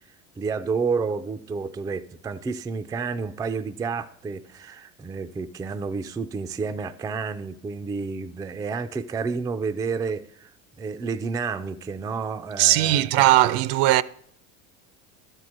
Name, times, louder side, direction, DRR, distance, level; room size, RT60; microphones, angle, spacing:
voice 1, 0.4-10.5 10.8-13.1, right 5 dB, 10° right, 0.3 m, -30 dB
voice 2, 12.6-14.0, right 15 dB, 60° right, 0.6 m, -18 dB
12.0 x 4.6 x 6.3 m
hypercardioid pair, 80°, 44 cm